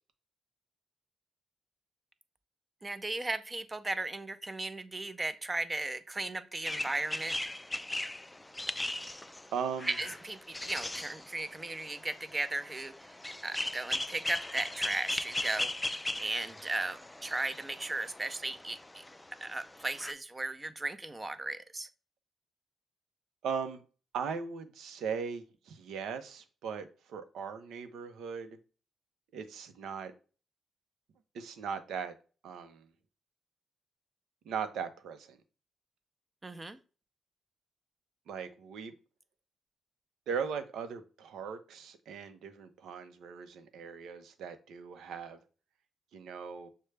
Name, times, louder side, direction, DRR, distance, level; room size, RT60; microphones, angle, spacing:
voice 1, 2.8-7.4 9.9-19.0 19.4-21.9 36.4-36.8, right 2 dB, 25° right, 11 dB, 0.6 m, -36 dB
sound 1, 6.7-20.1, left 1 dB, 15° left, 0.3 m, -39 dB
voice 2, 9.5-9.9 23.4-23.8 24.1-28.6 29.3-30.1 31.3-32.1 32.4-32.9 34.4-35.4 38.3-38.9 40.3-45.4 46.1-46.7, right 6 dB, 75° right, 9 dB, 0.6 m, -38 dB
6.4 x 2.2 x 3.3 m, 0.37 s
supercardioid pair, 50°, 0 cm